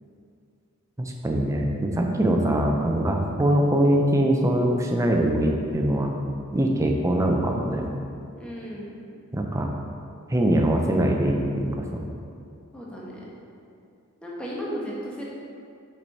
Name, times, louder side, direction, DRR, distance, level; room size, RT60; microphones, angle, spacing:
voice 1, 1.0-6.1 6.5-7.8 9.3-9.7 10.3-12.1, right 1 dB, 15° right, 1 dB, 0.5 m, -23 dB
voice 2, 8.4-9.0 12.7-13.2 14.2-15.2, equal, 5° left, -5 dB, 1.0 m, -34 dB
6.1 x 4.7 x 4.1 m, 2.5 s
head